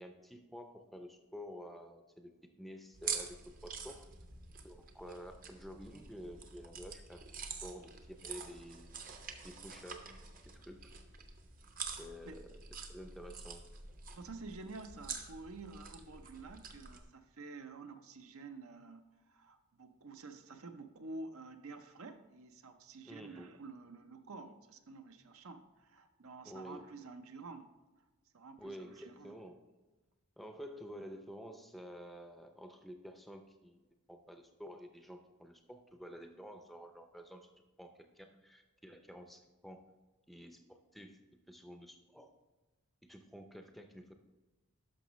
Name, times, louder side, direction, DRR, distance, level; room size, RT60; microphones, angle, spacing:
voice 1, 0.0-2.3 2.6-3.4 3.6-4.0 4.6-7.2 7.6-8.9 9.4-10.0 10.4-10.9 12.0-12.6 12.9-13.6 23.1-23.5 26.4-26.9 28.6-29.7 30.4-37.5 37.8-39.8 40.3-41.2 41.5-42.3 43.0-44.1, equal, ahead, 5 dB, 0.5 m, -50 dB
sound 1, 2.9-17.0, right 5 dB, 35° right, 0.7 m, -47 dB
voice 2, 14.1-28.1 28.3-29.4, right 3 dB, 70° right, 8 dB, 0.7 m, -50 dB
10.5 x 6.2 x 3.1 m, 1.2 s
head